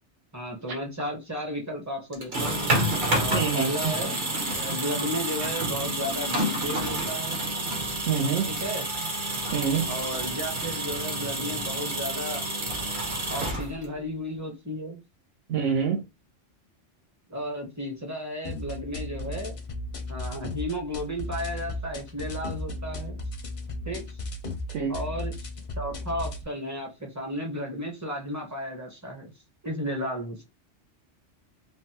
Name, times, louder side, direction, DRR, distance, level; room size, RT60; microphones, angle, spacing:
voice 1, 0.3-2.8 3.1-4.2 4.5-7.4 8.5-8.9 9.9-12.4 13.3-15.0 17.3-19.6 20.1-23.2 23.9-24.2 24.9-25.4 25.8-29.3 29.6-30.4, equal, 20° right, 0.6 m, -34 dB
sound 1, 2.1-14.0, right 1 dB, 45° right, 0.9 m, -29 dB
voice 2, 3.3-3.7 8.1-8.5 9.5-9.9 15.5-16.0 24.7-24.9, right 6 dB, 85° right, 1.0 m, -26 dB
sound 2, 18.4-26.4, left 2 dB, 50° left, 0.6 m, -35 dB
3.3 x 2.1 x 2.8 m
omnidirectional pair, 1.2 m